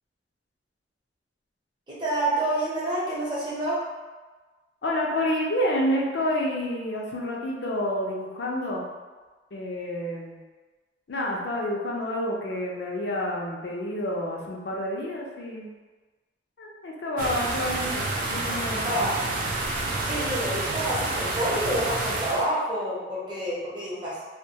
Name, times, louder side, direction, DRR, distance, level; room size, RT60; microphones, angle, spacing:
voice 1, 1.9-3.8 18.8-19.3 20.1-24.2, right 1 dB, 25° right, -8 dB, 0.7 m, -28 dB
voice 2, 4.8-8.9 9.5-10.4 11.1-15.7 16.6-19.2, left 1 dB, 65° left, -1 dB, 0.4 m, -29 dB
sound 1, 17.2-22.5, right 2 dB, 45° right, 0.3 m, -29 dB
2.2 x 2.1 x 2.7 m, 1.3 s
head